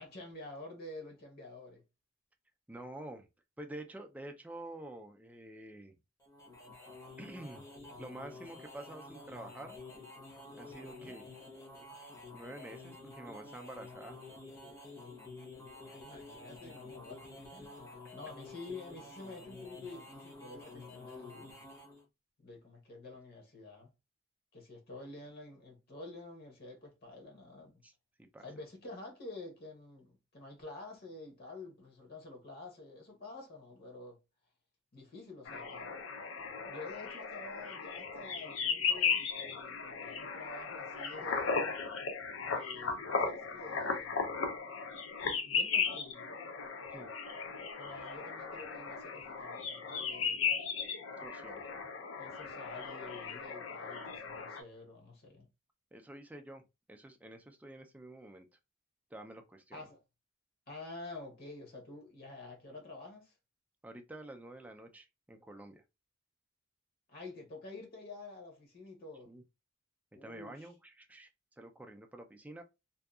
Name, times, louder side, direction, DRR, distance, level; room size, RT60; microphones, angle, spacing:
voice 1, 0.0-1.8 10.8-11.1 15.8-21.7 22.4-23.9 24.5-27.8 28.4-34.2 34.9-36.0 36.7-41.8 42.4-44.3 45.2-46.4 47.8-50.5 52.2-55.5 59.7-60.0 60.7-63.3 67.1-69.3 70.1-70.7, left 2 dB, 50° left, 0.9 m, -49 dB
voice 2, 2.7-3.3 3.6-5.9 7.2-7.7 8.0-9.8 10.5-11.3 12.3-14.2 27.8-27.9 28.3-28.4 46.9-47.1 51.2-51.6 55.9-56.6 56.9-58.5 59.1-59.8 63.8-65.8 69.3-69.4 70.2-71.3 71.6-72.6, right 1 dB, 10° right, 0.4 m, -48 dB
sound 1, 6.2-22.0, left 2 dB, 15° left, 0.7 m, -50 dB
sound 2, 35.5-54.6, left 5 dB, 70° left, 0.5 m, -36 dB
2.6 x 2.3 x 2.3 m
head